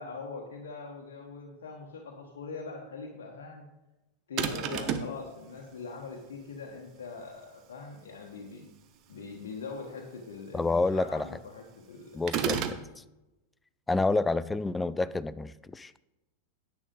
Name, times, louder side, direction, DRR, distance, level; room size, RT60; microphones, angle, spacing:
voice 1, 0.0-3.7 4.3-8.7 9.1-12.2, left 4 dB, 60° left, 0 dB, 1.2 m, -42 dB
sound 1, 4.4-5.2 12.3-12.9, right 8 dB, 40° right, 0.8 m, -30 dB
voice 2, 10.5-11.3 12.1-12.8 13.9-15.9, left 3 dB, 10° left, 16 dB, 0.4 m, -28 dB
9.9 x 8.4 x 3.8 m, 0.98 s
figure-of-eight pair, 90°, 0 cm